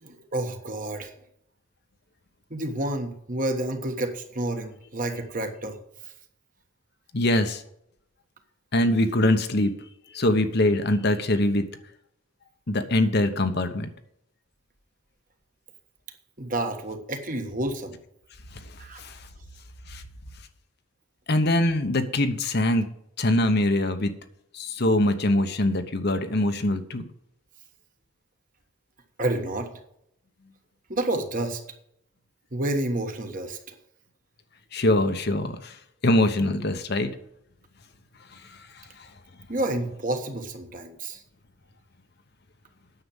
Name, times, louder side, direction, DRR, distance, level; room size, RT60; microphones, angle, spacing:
voice 1, 0.0-1.1 2.5-5.8 16.4-18.0 18.8-19.0 29.2-29.7 30.9-31.6 32.5-33.6 39.5-41.2, right 1 dB, 40° right, 5 dB, 1.4 m, -29 dB
voice 2, 7.1-7.6 8.7-9.7 10.1-11.6 12.7-13.9 19.0-19.1 19.9-20.0 21.3-22.8 23.2-24.1 24.5-27.1 34.7-35.7 36.0-37.1, left 1 dB, 50° left, 8 dB, 1.0 m, -23 dB
9.7 x 6.8 x 7.2 m, 0.74 s
head